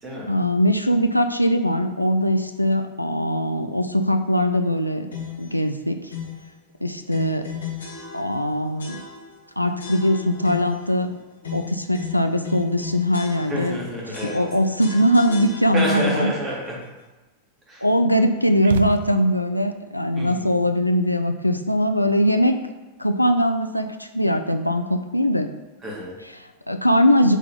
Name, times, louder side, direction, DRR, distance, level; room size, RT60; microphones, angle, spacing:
voice 1, 0.3-5.1 5.4-6.1 6.8-7.5 8.1-9.0 9.6-11.2 11.5-13.8 14.2-16.3 17.8-22.6 23.0-25.5 26.2-27.4, equal, 90° left, 7 dB, 0.4 m, -21 dB
sound 1, 5.1-5.5 6.1-6.5 7.1-8.5 8.8-9.4 9.8-10.9 11.4-13.8 14.1-16.0, left 6 dB, 70° left, 1.4 m, -35 dB
voice 2, 13.5-14.4 15.7-16.8 17.7-17.8 20.2-20.5 25.8-26.1, equal, 25° right, -4 dB, 2.3 m, -28 dB
sound 2, 18.6-19.6, right 8 dB, 60° right, 0.3 m, -30 dB
8.2 x 3.9 x 3.7 m, 1.2 s
figure-of-eight pair, 90°, 0 cm